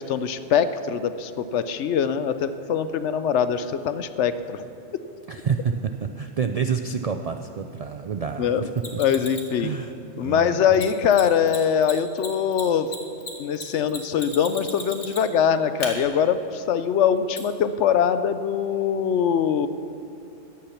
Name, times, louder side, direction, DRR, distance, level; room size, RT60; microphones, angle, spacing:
voice 1, 0.0-4.7 8.4-8.7 9.0-9.7 10.2-12.9 13.4-19.7, left 7 dB, 80° left, 12 dB, 0.9 m, -23 dB
voice 2, 5.3-9.0 9.6-9.9 10.2-10.7, right 6 dB, 65° right, 7 dB, 0.3 m, -28 dB
Mechanisms, 8.8-9.5 10.7-10.8 11.1-11.2 11.5-11.6 11.8-15.4 15.8-15.9 17.4-17.5, left 3 dB, 60° left, 2.0 m, -35 dB
14.5 x 10.0 x 5.8 m, 2.8 s
omnidirectional pair, 1.2 m